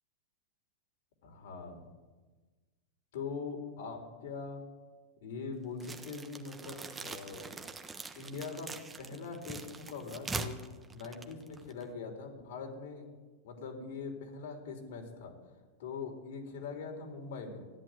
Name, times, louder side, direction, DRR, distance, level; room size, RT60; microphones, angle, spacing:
voice 1, 1.2-1.8 3.1-4.6 5.2-7.5 8.2-8.7 9.0-10.6 10.9-13.0 13.4-15.3 15.8-17.6, left 4 dB, 70° left, 3 dB, 4.0 m, -42 dB
sound 1, 5.8-11.9, right 4 dB, 15° right, 1.3 m, -43 dB
14.0 x 10.5 x 9.6 m, 1.3 s
hypercardioid pair, 115°, 0 cm